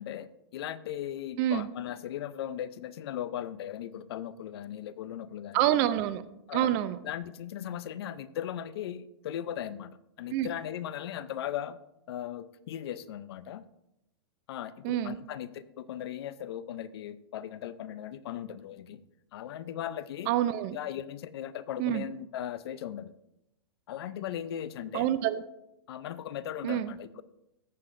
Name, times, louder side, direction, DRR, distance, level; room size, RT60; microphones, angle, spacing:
voice 1, 0.0-5.6 6.5-6.7 7.0-11.8 12.1-13.6 14.5-19.0 19.3-20.3 20.7-23.1 23.9-25.1 25.9-27.2, left 10 dB, 60° left, 16 dB, 0.6 m, -38 dB
voice 2, 5.5-6.2 6.5-7.0 10.3-10.5 14.8-15.2 20.3-20.8 21.8-22.0 24.9-25.4 26.6-26.9, right 12 dB, 35° right, 14 dB, 0.5 m, -27 dB
14.0 x 7.6 x 2.6 m, 0.88 s
hypercardioid pair, 145°, 15 cm